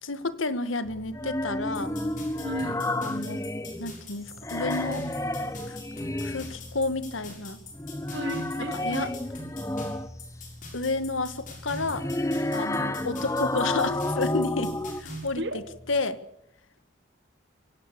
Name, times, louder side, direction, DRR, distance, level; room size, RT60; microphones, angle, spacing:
voice 1, 0.0-1.9 3.0-3.4 3.8-5.1 5.7-5.8 6.2-7.6 8.7-9.1 10.7-12.1 12.5-15.4 15.9-16.2, left 3 dB, 90° left, 12 dB, 1.7 m, -30 dB
sound 1, 0.8-16.0, left 1 dB, 10° right, 4.8 m, -48 dB
sound 2, 1.1-4.0 4.3-6.6 7.8-10.3 11.7-15.0, left 1 dB, 15° left, 0.9 m, -31 dB
sound 3, 1.7-15.3, left 1 dB, 40° left, 6.6 m, -44 dB
voice 2, 2.4-2.8 8.1-9.1 12.7-12.9 15.4-15.6, right 1 dB, 65° right, 8 dB, 2.5 m, -34 dB
24.5 x 17.0 x 6.9 m, 0.77 s
head